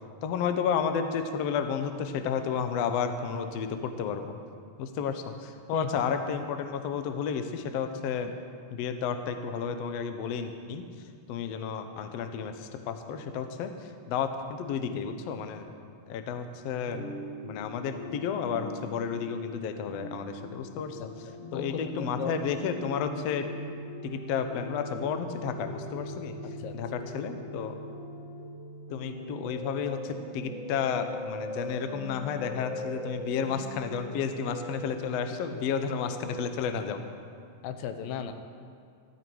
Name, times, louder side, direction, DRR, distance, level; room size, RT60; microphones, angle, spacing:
voice 1, 0.2-4.4 4.8-8.3 8.7-10.8 11.3-13.7 14.1-15.7 16.1-17.0 17.4-21.0 21.5-23.5 24.0-26.3 26.7-27.7 28.9-37.0, left 7 dB, 70° left, 7 dB, 1.5 m, -32 dB
sound 1, 16.9-36.7, left 1 dB, 45° left, 1.8 m, -40 dB
voice 2, 21.0-22.4 26.6-26.8 37.6-38.3, left 8 dB, 90° left, 8 dB, 2.5 m, -36 dB
14.0 x 14.0 x 4.6 m, 2.3 s
omnidirectional pair, 3.9 m